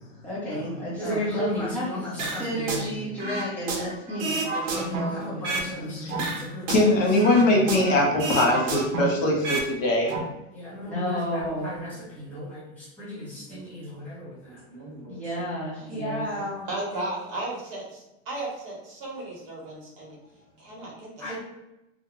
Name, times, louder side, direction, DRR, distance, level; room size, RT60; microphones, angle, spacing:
voice 1, 0.2-7.6 10.5-14.6 15.1-16.6 21.2-21.4, equal, 5° left, -10 dB, 0.7 m, -32 dB
sound 1, 2.2-2.9 3.2-5.7 6.1-9.7 10.0-10.2, right 3 dB, 70° right, 0.7 m, -30 dB
voice 2, 5.9-6.3 6.7-10.1, left 1 dB, 75° left, -1 dB, 1.0 m, -21 dB
voice 3, 13.3-14.0 14.5-15.4 15.8-15.9 16.3-20.2 20.6-21.3, right 2 dB, 40° right, -3 dB, 1.0 m, -37 dB
2.5 x 2.2 x 3.0 m, 0.94 s
supercardioid pair, 160°, 39 cm